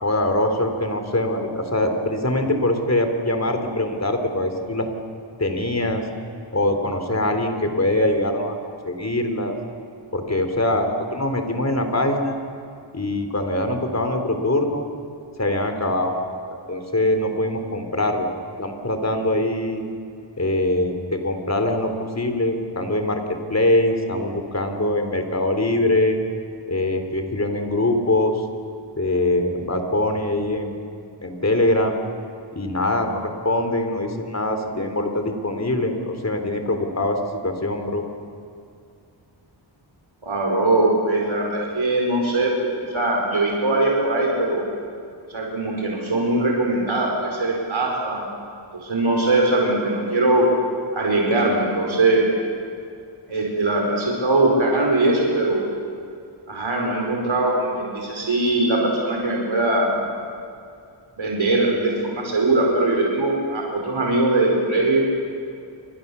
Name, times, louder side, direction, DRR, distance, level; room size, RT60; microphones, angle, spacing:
voice 1, 0.0-4.9 5.4-6.0 6.5-8.6 8.8-9.6 10.1-12.4 12.9-14.9 15.4-16.1 16.5-18.3 18.6-19.8 20.4-21.9 22.2-23.2 23.5-26.2 26.7-28.4 29.0-30.8 31.2-32.0 32.5-37.2 37.4-38.0, left 1 dB, 35° left, 5 dB, 3.7 m, -23 dB
voice 2, 40.2-44.6 45.3-48.2 48.8-50.5 50.9-52.2 53.3-55.6 56.5-59.9 61.2-65.0, right 2 dB, 80° right, -1 dB, 4.7 m, -21 dB
29.0 x 25.0 x 7.0 m, 2.5 s
wide cardioid pair, 75°, 46 cm